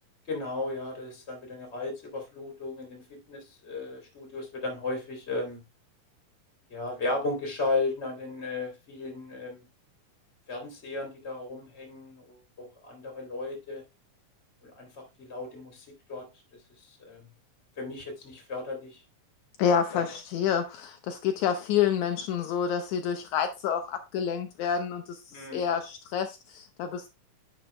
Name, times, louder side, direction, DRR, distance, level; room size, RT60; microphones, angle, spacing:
voice 1, 0.3-5.6 6.7-9.6 10.5-13.8 14.6-16.2 16.9-17.3 17.8-19.0 19.9-20.2 25.3-25.6, left 2 dB, 20° left, 2.5 m, -35 dB
voice 2, 19.6-27.1, left 8 dB, 75° left, 2.0 m, -28 dB
9.9 x 5.2 x 3.2 m
omnidirectional pair, 3.6 m